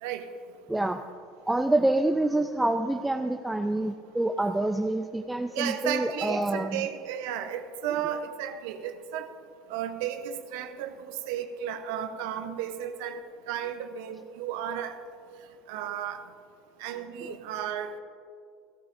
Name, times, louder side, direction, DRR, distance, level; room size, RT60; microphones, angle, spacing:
voice 1, 0.7-1.0 1.5-6.9 17.2-17.4, right 2 dB, 10° right, 5 dB, 0.5 m, -27 dB
voice 2, 5.5-9.3 9.7-13.2 13.5-14.9 15.7-16.2 16.8-17.9, right 9 dB, 80° right, 8 dB, 0.8 m, -33 dB
15.0 x 13.0 x 2.6 m, 2.3 s
supercardioid pair, 100°, 0 cm